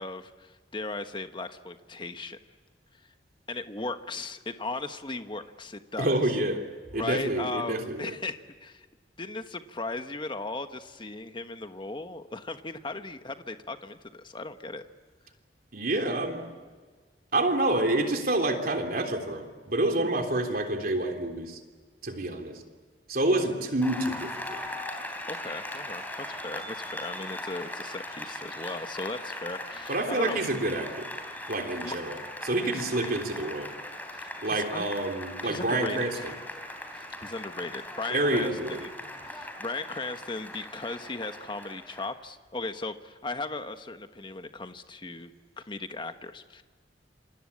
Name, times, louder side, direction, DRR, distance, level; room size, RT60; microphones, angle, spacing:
voice 1, 0.0-2.4 3.5-6.2 6.9-8.9 9.2-14.9 25.3-30.4 31.8-32.0 33.0-33.2 34.1-34.9 35.4-36.4 36.9-39.0 39.2-45.3 45.6-46.6, left 3 dB, 30° left, 8 dB, 1.3 m, -37 dB
voice 2, 6.0-6.6 6.9-8.1 15.7-16.4 17.3-21.6 22.0-22.6 23.1-24.6 29.9-31.1 31.5-32.2 32.4-33.7 34.4-36.3 38.1-38.9, right 2 dB, 55° right, 4 dB, 3.5 m, -28 dB
Applause, 23.8-42.1, left 1 dB, 10° left, 3.4 m, -39 dB
27.0 x 25.0 x 8.6 m, 1.4 s
head